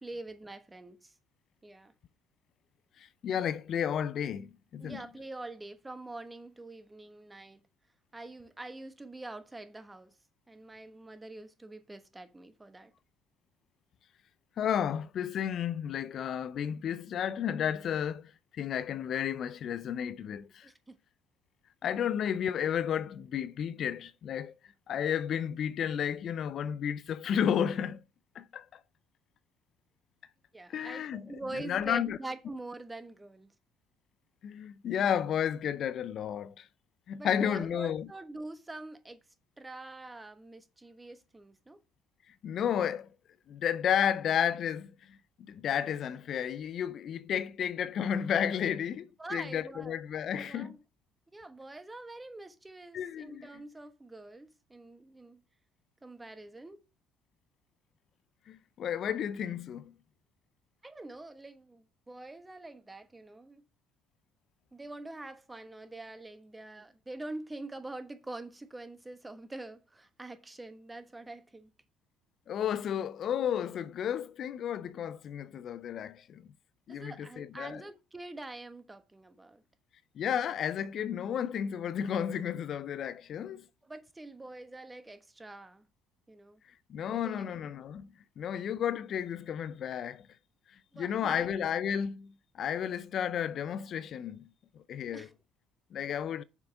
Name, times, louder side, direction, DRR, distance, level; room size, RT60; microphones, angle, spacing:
voice 1, 0.0-1.2 1.6-1.9 4.8-7.6 8.1-10.2 10.5-12.9 20.6-21.0 22.0-22.1 30.5-33.5 37.2-39.2 39.6-41.8 49.2-50.0 50.4-50.8 51.3-55.4 56.0-56.8 60.8-63.6 64.7-71.7 76.9-79.6 83.8-85.9 86.3-86.6 87.0-87.5 90.9-91.5 95.1-95.3, right 2 dB, 15° right, 1.2 m, -45 dB
voice 2, 3.0-5.0 14.6-20.7 21.8-24.5 24.9-28.0 28.3-28.8 30.7-32.2 34.4-36.7 37.1-38.1 42.4-43.1 43.5-50.8 52.9-53.4 58.5-59.9 72.5-76.5 76.9-77.8 80.1-83.7 86.9-88.1 88.4-90.3 90.9-94.5 94.7-95.3 95.9-96.4, left 9 dB, 55° left, 0.5 m, -32 dB
6.8 x 4.8 x 6.4 m
hypercardioid pair, 60°, 0 cm